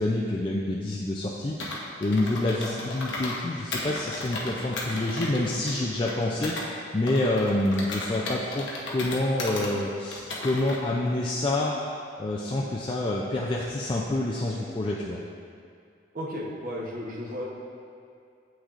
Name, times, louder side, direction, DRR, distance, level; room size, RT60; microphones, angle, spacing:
voice 1, 0.0-11.7 12.2-15.2, left 2 dB, 25° left, -4 dB, 0.3 m, -27 dB
Computer keyboard, 1.6-3.4 3.7-6.7 7.1-9.7 10.1-10.8, left 2 dB, 85° left, 0.9 m, -35 dB
voice 2, 16.1-17.4, equal, 50° right, -3 dB, 0.9 m, -34 dB
8.1 x 6.2 x 2.5 m, 2.3 s
head